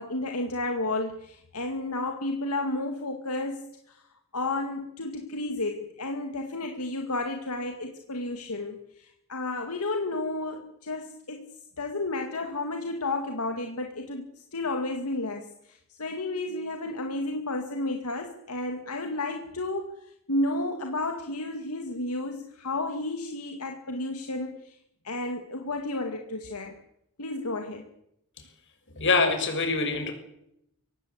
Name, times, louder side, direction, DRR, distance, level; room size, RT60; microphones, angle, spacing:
voice 1, 0.0-4.0 4.3-11.4 11.8-14.3 14.5-15.5 15.9-19.9 20.3-24.8 25.0-26.7 27.2-27.8, left 2 dB, 80° left, 4 dB, 2.1 m, -32 dB
voice 2, 29.0-30.1, left 3 dB, 55° left, 6 dB, 6.2 m, -24 dB
23.5 x 18.0 x 8.1 m, 0.79 s
head